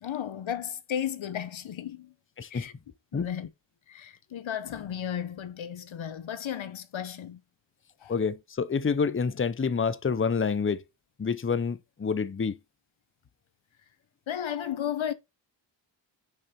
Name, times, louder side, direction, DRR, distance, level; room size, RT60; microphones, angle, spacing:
voice 1, 0.0-2.1 2.5-2.7 3.1-3.5 3.9-7.4 8.0-8.1 14.3-15.1, left 9 dB, 85° left, 1.0 m, -34 dB
voice 2, 2.4-2.7 3.1-3.3 8.1-10.8 11.2-12.6, left 5 dB, 25° left, 0.7 m, -28 dB
6.5 x 5.5 x 4.3 m
wide cardioid pair, 70°, 46 cm